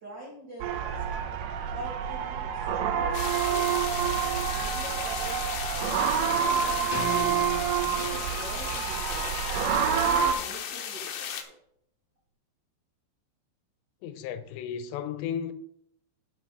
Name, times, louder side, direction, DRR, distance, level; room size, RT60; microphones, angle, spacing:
voice 1, 0.0-1.0 1.7-3.7 4.2-9.3 9.8-11.4, right 2 dB, 65° right, 1.0 m, -44 dB
sound 1, 0.6-10.3, right 8 dB, 90° right, 1.8 m, -28 dB
sound 2, 3.1-11.4, left 8 dB, 75° left, 2.2 m, -35 dB
sound 3, 6.9-8.8, left 1 dB, 25° left, 1.1 m, -37 dB
voice 2, 14.0-15.5, left 8 dB, 90° left, 3.0 m, -34 dB
10.5 x 5.9 x 4.8 m
omnidirectional pair, 4.9 m